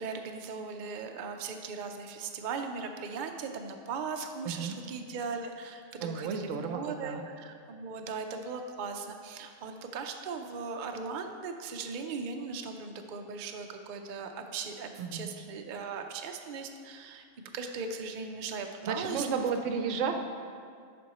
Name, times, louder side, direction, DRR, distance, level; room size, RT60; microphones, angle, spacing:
voice 1, 0.0-17.2 17.5-19.5, right 5 dB, 60° right, 5 dB, 0.5 m, -38 dB
voice 2, 4.5-4.8 6.0-7.2 15.0-15.3 18.8-20.1, right 6 dB, 75° right, 6 dB, 0.9 m, -32 dB
7.5 x 5.3 x 4.1 m, 2.2 s
omnidirectional pair, 1.3 m